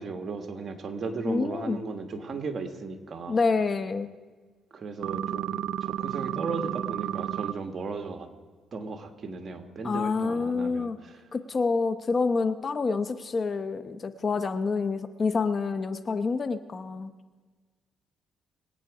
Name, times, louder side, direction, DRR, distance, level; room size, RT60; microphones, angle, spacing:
voice 1, 0.0-3.4 4.7-8.3 8.7-11.2, right 4 dB, 45° right, 6 dB, 1.5 m, -36 dB
voice 2, 1.2-1.8 3.3-4.1 9.8-11.0 11.3-17.1, left 4 dB, 40° left, 11 dB, 0.8 m, -27 dB
sound 1, 5.0-7.5, right 11 dB, 80° right, 0.3 m, -31 dB
23.5 x 8.9 x 4.8 m, 1.4 s
cardioid pair, 90°, 0 cm